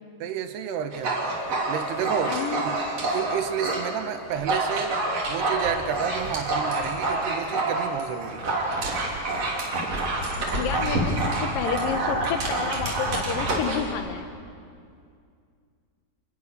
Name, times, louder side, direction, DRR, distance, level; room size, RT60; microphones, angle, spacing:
voice 1, 0.2-1.2 1.7-2.8 3.1-5.0 5.3-8.6, right 9 dB, 80° right, 9 dB, 3.1 m, -31 dB
Dog, 0.9-3.9 4.2-13.9, right 2 dB, 40° right, 4.3 m, -27 dB
voice 2, 2.2-2.6 10.4-14.3, left 8 dB, 65° left, 8 dB, 2.5 m, -30 dB
27.5 x 20.5 x 6.8 m, 2.3 s
omnidirectional pair, 4.9 m